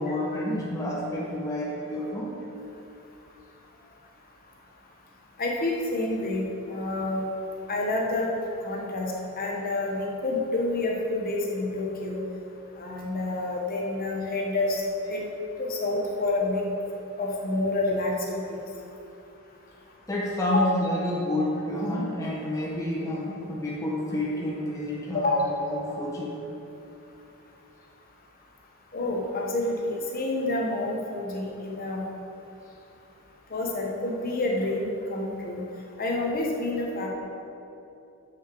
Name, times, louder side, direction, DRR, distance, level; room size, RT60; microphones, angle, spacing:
voice 1, 0.0-2.3 20.1-26.4, left 1 dB, 15° left, -5 dB, 1.0 m, -29 dB
voice 2, 5.4-7.2 7.7-8.3 8.6-12.2 12.8-14.8 15.1-15.2 15.6-16.7 17.2-18.6 20.5-20.7 25.1-25.4 28.9-32.0 33.5-35.6 36.0-37.1, left 2 dB, 40° left, -1 dB, 1.2 m, -28 dB
7.0 x 6.4 x 6.0 m, 2.9 s
head